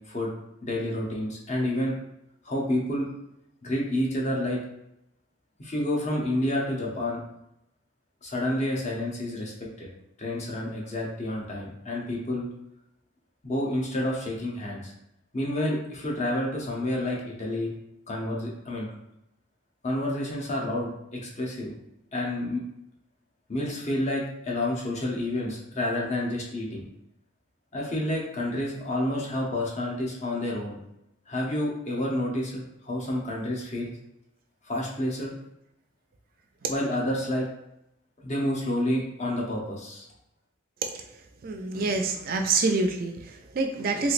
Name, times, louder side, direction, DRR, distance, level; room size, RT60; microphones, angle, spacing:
voice 1, 0.6-1.9 2.5-3.1 3.6-4.6 5.6-7.2 8.2-9.5 9.8-9.9 10.2-12.5 13.4-14.9 15.3-17.7 18.1-18.9 19.8-21.7 22.1-22.6 23.5-26.9 27.7-30.8 31.3-33.9 34.7-35.3 36.7-37.5 38.2-40.0, left 1 dB, 35° left, -2 dB, 0.7 m, -29 dB
voice 2, 41.4-44.1, right 3 dB, 45° right, 4 dB, 0.4 m, -26 dB
3.3 x 3.1 x 2.5 m, 0.83 s
head